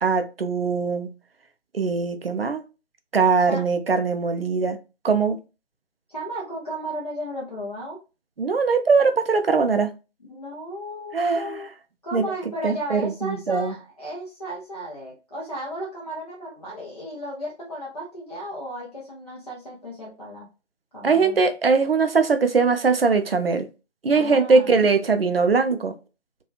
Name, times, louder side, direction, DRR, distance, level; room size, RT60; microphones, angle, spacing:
voice 1, 0.0-1.1 1.7-2.6 3.1-4.8 5.0-5.4 8.4-9.9 11.1-11.6 12.1-12.2 12.6-13.7 21.0-23.7 24.0-25.9, right 4 dB, 55° right, 9 dB, 0.4 m, -21 dB
voice 2, 6.1-8.0 10.2-11.7 12.0-20.5 20.9-21.4 24.1-24.8, equal, 35° left, -5 dB, 0.6 m, -34 dB
2.9 x 2.3 x 2.4 m, 0.30 s
figure-of-eight pair, 155°, 36 cm